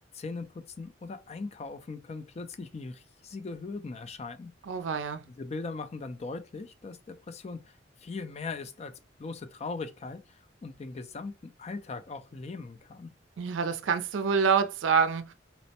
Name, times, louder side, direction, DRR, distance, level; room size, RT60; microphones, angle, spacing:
voice 1, 0.1-4.5 5.4-8.9 9.2-13.1, left 3 dB, 35° left, 0.4 m, -39 dB
voice 2, 4.7-5.2 13.4-15.3, right 6 dB, 80° right, 0.4 m, -26 dB
4.2 x 2.0 x 2.7 m
head